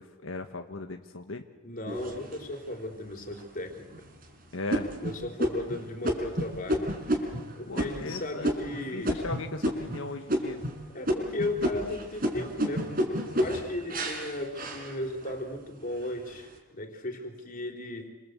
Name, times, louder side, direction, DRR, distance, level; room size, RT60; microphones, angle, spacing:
voice 1, 0.0-1.4 4.5-4.9 7.7-10.6, left 3 dB, 90° left, 5 dB, 1.4 m, -37 dB
voice 2, 1.6-3.9 5.0-6.9 7.6-9.1 10.9-12.9 13.2-18.1, left 2 dB, 45° left, 3 dB, 4.0 m, -36 dB
sound 1, 1.9-2.7 3.3-3.4 3.9-4.2 4.7-10.0 10.3-10.8 11.1-15.4 15.9-16.4, equal, 45° right, 4.9 m, -31 dB
28.0 x 26.0 x 8.1 m, 1.1 s
head